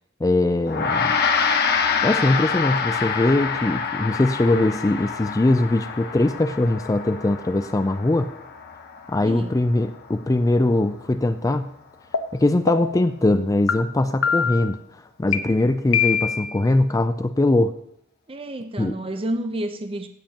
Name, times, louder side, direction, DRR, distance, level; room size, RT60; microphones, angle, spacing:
voice 1, 0.2-1.1 2.0-8.3 9.1-11.7 12.3-14.8 15.2-17.7 18.8-19.0, left 2 dB, 15° left, 10 dB, 0.4 m, -21 dB
Gong, 0.7-10.3, left 6 dB, 50° left, 1.2 m, -26 dB
voice 2, 9.2-9.5 18.3-20.1, right 1 dB, 25° right, 8 dB, 0.7 m, -29 dB
sound 1, 12.1-12.2 12.7-13.1 13.7-13.8 14.2-14.7 15.3-15.4 15.9-16.5, left 7 dB, 70° left, 0.9 m, -22 dB
16.0 x 7.4 x 2.9 m, 0.74 s
head